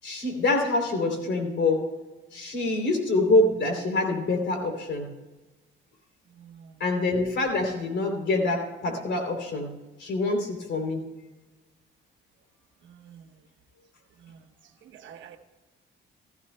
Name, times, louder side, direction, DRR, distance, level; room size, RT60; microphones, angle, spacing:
voice 1, 0.0-1.8 2.3-5.1 6.8-9.7 10.0-11.0, left 2 dB, 65° left, 3 dB, 3.2 m, -25 dB
voice 2, 6.4-6.7 12.9-13.3 14.2-14.4 14.9-15.4, right 8 dB, 70° right, 5 dB, 1.2 m, -48 dB
15.5 x 14.0 x 2.2 m, 1.1 s
cardioid pair, 90°, 20 cm